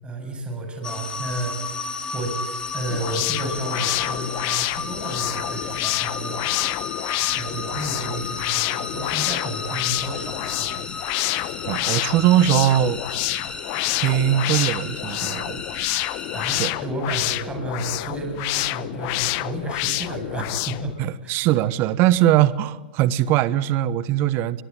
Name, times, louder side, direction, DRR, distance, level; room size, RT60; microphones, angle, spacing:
voice 1, 0.0-1.8 2.1-2.4 2.7-6.4 7.3-10.7 16.3-21.0 21.2-21.4, right 2 dB, 20° right, 3 dB, 7.8 m, -32 dB
sound 1, 0.8-16.7, left 4 dB, 15° left, 4.1 m, -33 dB
sound 2, 2.9-20.9, left 20 dB, 50° left, 1.0 m, -28 dB
voice 2, 11.7-13.0 14.0-15.6 16.6-16.7 21.0-24.6, right 12 dB, 45° right, 17 dB, 1.2 m, -20 dB
22.0 x 22.0 x 9.0 m, 1.0 s
hypercardioid pair, 110°, 5 cm